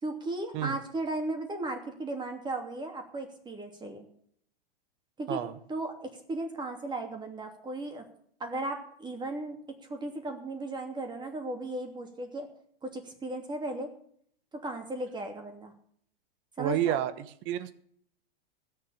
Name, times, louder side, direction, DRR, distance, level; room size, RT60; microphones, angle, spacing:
voice 1, 0.0-4.0 5.2-5.4 5.7-8.0 8.4-9.6 9.9-12.5 12.8-13.9 14.6-15.7 16.6-17.0, right 2 dB, 15° right, 4 dB, 2.8 m, -36 dB
voice 2, 16.6-17.1 17.4-17.7, right 12 dB, 40° right, 13 dB, 1.3 m, -29 dB
16.5 x 7.3 x 8.5 m, 0.64 s
hypercardioid pair, 125°, 31 cm